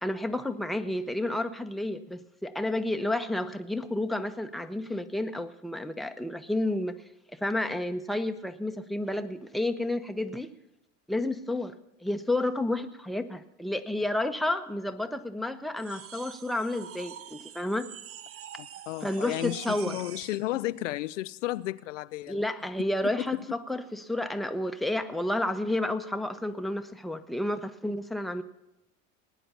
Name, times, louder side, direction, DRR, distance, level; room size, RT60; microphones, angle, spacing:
voice 1, 0.0-7.0 7.3-10.5 11.1-11.7 12.0-17.9 19.0-20.0 22.3-28.4, left 1 dB, ahead, 0.9 m, -31 dB
sound 1, 15.8-20.5, right 10 dB, 35° right, 0.7 m, -46 dB
voice 2, 18.6-22.4 23.2-23.3, left 16 dB, 75° left, 0.5 m, -33 dB
19.0 x 9.9 x 5.6 m
hypercardioid pair, 70°, 38 cm